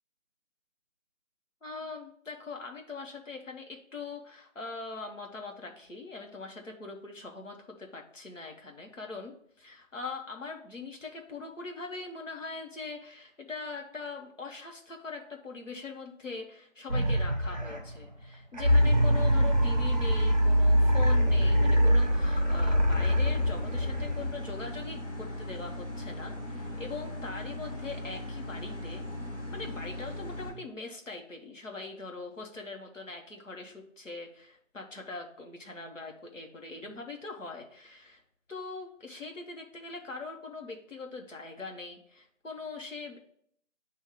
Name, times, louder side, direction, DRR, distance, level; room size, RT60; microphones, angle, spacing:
voice 1, 1.6-3.7 3.9-29.0 29.4-38.2 38.5-43.2, left 3 dB, 75° left, 1 dB, 1.3 m, -42 dB
sound 1, 16.9-18.0 18.5-24.5, equal, 35° right, 0.8 m, -24 dB
sound 2, 18.7-30.5, left 1 dB, 10° left, 2.4 m, -39 dB
7.7 x 2.7 x 5.0 m, 0.65 s
figure-of-eight pair, 170°, 39 cm